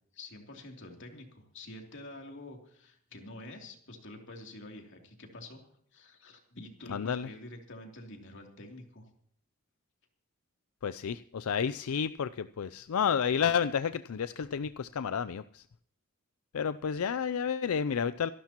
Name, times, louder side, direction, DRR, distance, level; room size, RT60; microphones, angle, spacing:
voice 1, 0.1-9.0, left 1 dB, 60° left, 2 dB, 3.0 m, -48 dB
voice 2, 6.9-7.3 10.8-15.6 16.5-18.3, left 7 dB, 90° left, 14 dB, 0.4 m, -31 dB
26.5 x 11.5 x 3.0 m, 0.65 s
head